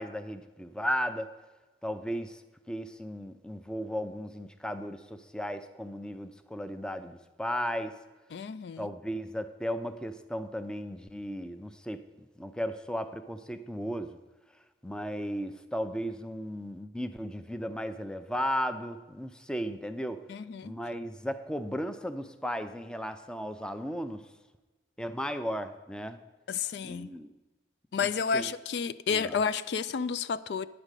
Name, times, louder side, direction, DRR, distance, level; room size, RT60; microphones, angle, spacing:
voice 1, 0.0-1.3 1.8-2.4 2.7-8.0 8.8-12.0 12.4-14.2 14.8-20.2 20.6-24.3 25.0-26.2 26.8-27.3 28.0-28.5 29.1-29.4, equal, 5° left, 0.4 m, -35 dB
voice 2, 8.3-8.9 20.3-20.7 26.5-27.1 27.9-30.7, left 6 dB, 75° left, 0.4 m, -31 dB
9.8 x 5.2 x 8.1 m
head